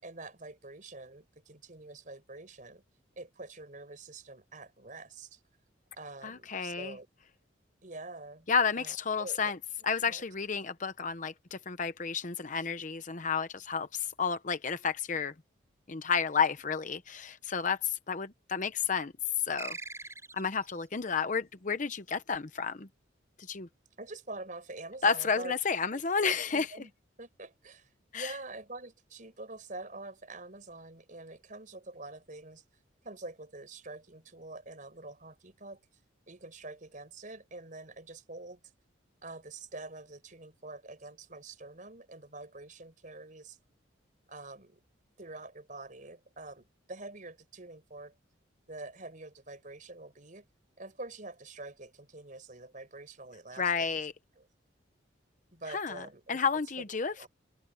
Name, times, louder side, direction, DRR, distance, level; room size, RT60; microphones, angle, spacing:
voice 1, 0.0-2.8 3.2-5.4 5.9-7.1 7.8-8.5 8.8-9.5 10.1-10.2 24.0-25.5 25.9-26.9 27.2-32.6 33.0-35.8 36.3-38.6 39.2-43.6 44.3-44.8 45.2-48.1 48.7-50.5 50.8-53.9 54.4-54.5 55.5-56.4 56.8-57.3, right 2 dB, 45° right, 5.0 m, -46 dB
voice 2, 6.2-7.0 8.5-9.6 9.8-15.3 15.9-19.1 19.4-19.8 20.3-22.9 23.5-23.7 25.0-26.7 28.1-28.3 53.6-54.1 55.7-57.3, left 5 dB, 40° left, 0.8 m, -31 dB
sound 1, 19.6-20.8, right 3 dB, 15° right, 5.1 m, -42 dB
open air
head